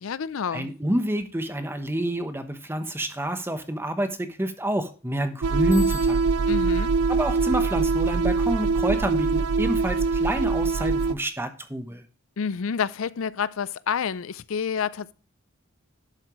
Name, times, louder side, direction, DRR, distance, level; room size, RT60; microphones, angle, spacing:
voice 1, 0.0-0.7 6.5-7.0 12.4-15.1, left 6 dB, 65° left, 0.5 m, -29 dB
voice 2, 0.5-6.2 7.1-12.0, right 1 dB, 10° right, 1.0 m, -28 dB
sound 1, 5.4-11.1, right 4 dB, 85° right, 0.5 m, -23 dB
Bicycle bell, 5.7-6.7, left 8 dB, 30° left, 2.3 m, -42 dB
11.5 x 7.5 x 3.1 m
head